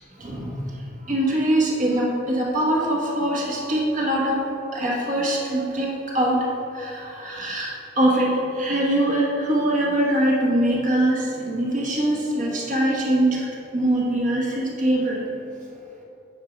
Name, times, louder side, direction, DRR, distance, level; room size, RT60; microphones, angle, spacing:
voice 1, 0.2-0.7 1.1-4.5 4.7-6.4 6.7-13.5 13.7-15.3, right 1 dB, 45° right, -3 dB, 1.2 m, -23 dB
9.1 x 4.6 x 4.9 m, 2.9 s
head